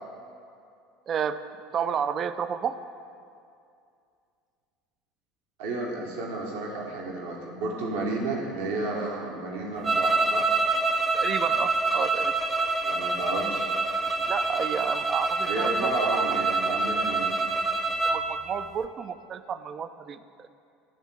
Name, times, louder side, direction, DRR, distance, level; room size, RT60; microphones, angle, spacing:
voice 1, 1.1-1.4 1.7-2.8 11.1-12.3 14.3-16.2 18.0-20.5, right 7 dB, 35° right, 12 dB, 0.4 m, -31 dB
voice 2, 5.6-10.5 12.8-13.7 15.5-17.3, right 3 dB, 60° right, -1 dB, 1.0 m, -31 dB
sound 1, 9.8-18.3, right 3 dB, 20° right, 0.8 m, -26 dB
10.0 x 3.6 x 7.1 m, 2.4 s
figure-of-eight pair, 70°, 0 cm